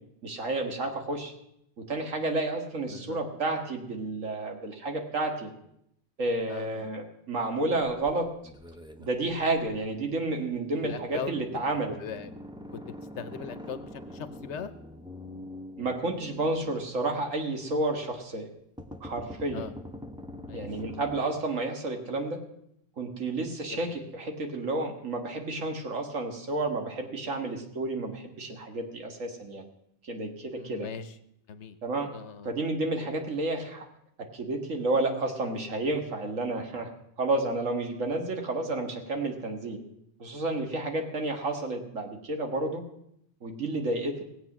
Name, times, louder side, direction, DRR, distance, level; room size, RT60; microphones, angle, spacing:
voice 1, 0.2-1.3 1.8-5.5 6.2-8.3 9.0-12.0 15.8-18.5 19.0-19.7 20.5-22.4 23.0-29.6 30.0-30.9 31.8-32.1 32.4-33.9 34.2-36.9 37.2-39.8 40.2-42.8 43.4-44.2, right 2 dB, 85° right, 3 dB, 2.1 m, -31 dB
voice 2, 2.9-3.2 6.5-6.9 9.7-9.9 10.8-11.4 12.0-12.3 12.7-14.7 19.5-19.7 20.5-20.7 23.7-24.0 30.5-31.1 31.5-31.8 32.1-32.5, left 7 dB, 65° left, 12 dB, 1.1 m, -40 dB
sound 1, 7.8-9.8 10.5-10.6 10.9-17.3 18.8-21.2, left 1 dB, 5° right, 0.4 m, -44 dB
18.5 x 8.0 x 6.0 m, 0.75 s
omnidirectional pair, 1.3 m